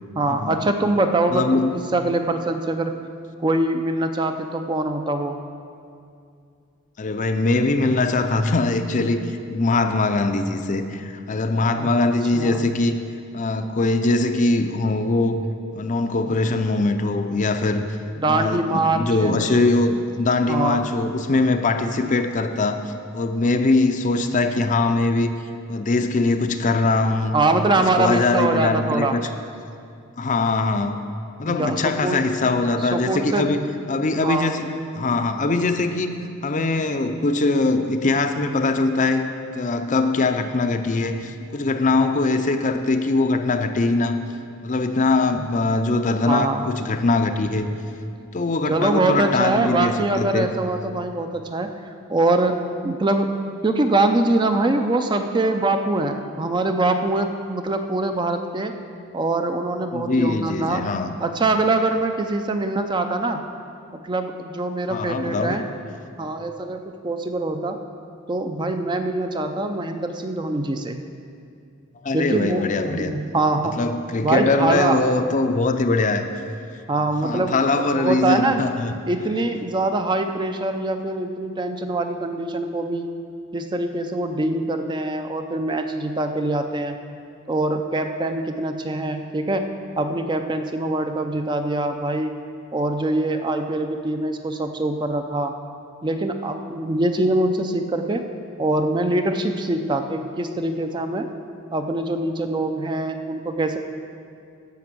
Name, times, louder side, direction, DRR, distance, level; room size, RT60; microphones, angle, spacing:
voice 1, 0.2-2.9 3.4-5.4 11.8-11.9 12.3-12.7 18.2-19.3 20.5-20.8 27.3-29.2 31.5-32.2 32.8-33.5 34.2-34.5 45.3-45.5 46.3-46.7 48.7-51.7 52.1-52.6 52.8-53.3 53.6-58.7 59.1-60.8 61.2-63.4 63.9-65.6 66.2-67.8 68.3-71.0 72.1-73.8 74.2-75.0 76.9-78.6 79.1-83.1 83.5-87.0 87.5-89.7 90.0-92.3 92.7-95.5 96.0-98.2 98.6-101.3 101.7-103.8, right 2 dB, 20° right, 6 dB, 0.4 m, -23 dB
voice 2, 1.3-1.7 7.0-13.0 13.3-15.4 15.7-18.0 18.3-22.8 23.1-25.3 25.7-27.3 27.7-29.3 30.2-31.0 31.4-33.6 33.9-34.7 35.0-36.2 36.4-44.2 44.6-47.7 48.3-50.5 59.9-61.1 64.9-65.6 72.0-73.1 73.6-76.3 77.2-78.9, left 3 dB, 35° left, 7 dB, 0.5 m, -22 dB
10.5 x 6.0 x 7.6 m, 2.4 s
head